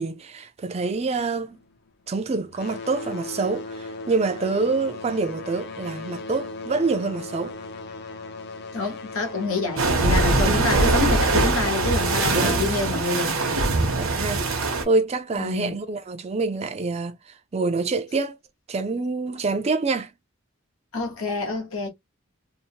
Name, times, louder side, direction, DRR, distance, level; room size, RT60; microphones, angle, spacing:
voice 1, 0.0-1.6 2.1-7.6 10.2-10.6 12.3-12.6 14.0-18.4 18.7-20.1, right 3 dB, 30° right, 0.3 m, -26 dB
sound 1, 0.7-2.1 2.4-12.7 13.6-13.7 14.3-14.4 15.1-15.2, left 3 dB, 50° left, 0.5 m, -38 dB
voice 2, 8.7-13.3 15.4-15.8 20.9-21.9, left 3 dB, 80° left, 1.1 m, -27 dB
sound 2, 9.8-14.8, right 2 dB, 75° right, 0.8 m, -22 dB
2.7 x 2.0 x 2.7 m
head